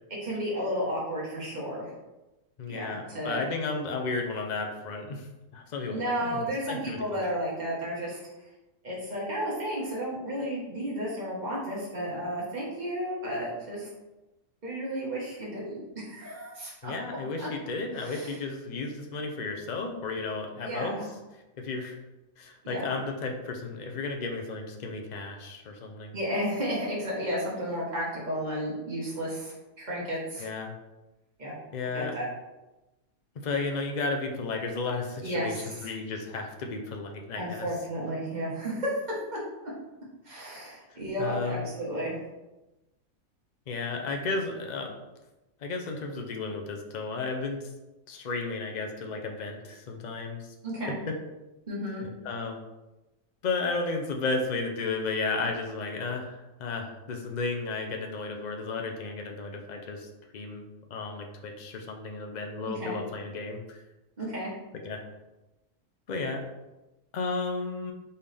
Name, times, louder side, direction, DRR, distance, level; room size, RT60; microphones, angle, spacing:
voice 1, 0.1-1.9 2.7-3.4 5.8-8.2 8.8-13.9 14.6-16.9 17.4-17.5 18.0-18.4 20.6-21.1 22.6-23.0 26.1-30.5 31.4-31.5 31.9-32.2 35.2-35.9 37.3-38.9 40.2-42.2 50.6-50.9 51.7-52.0 62.6-63.0 64.2-64.5, equal, 30° right, -5 dB, 1.4 m, -33 dB
voice 2, 2.6-5.3 5.5-7.0 16.8-21.0 21.6-22.0 22.4-26.2 30.4-30.8 31.7-32.2 33.4-37.7 40.9-41.7 43.7-45.0 45.6-47.7 48.1-50.5 51.1-51.2 52.0-52.6 53.4-60.6 60.9-63.8 64.8-65.0 66.1-66.4 67.1-67.9, left 3 dB, 70° left, 3 dB, 0.4 m, -33 dB
4.4 x 3.6 x 3.3 m, 1.0 s
omnidirectional pair, 1.5 m